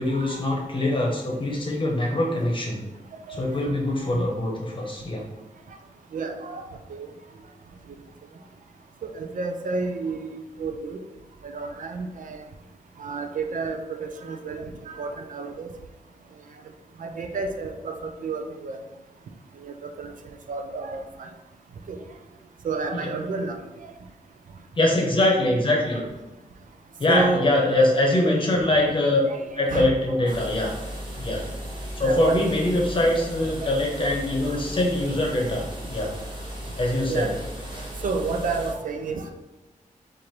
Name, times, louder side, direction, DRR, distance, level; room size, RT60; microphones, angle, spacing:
voice 1, 0.0-2.9 3.3-5.2 22.9-23.1 24.8-26.0 27.0-29.2 29.5-30.7 31.2-31.5 32.0-36.2 36.7-37.3, left 1 dB, 35° left, -1 dB, 0.9 m, -23 dB
voice 2, 3.3-3.7 4.1-4.2 6.1-6.6 6.9-7.1 9.0-11.0 11.4-12.4 13.0-15.7 17.0-18.8 19.6-20.1 20.5-21.3 21.9-22.0 22.6-23.6 23.8-23.9 25.9-26.0 27.1-27.5 29.3-29.9 30.3-30.4 32.0-32.4 33.6-33.7 34.0-34.1 34.5-34.6 37.1-37.3 38.0-39.3, right 4 dB, 70° right, 5 dB, 0.4 m, -30 dB
sound 1, 30.3-38.7, equal, 35° right, 0.9 m, -36 dB
4.3 x 2.6 x 3.1 m, 1.0 s
wide cardioid pair, 145°, 14 cm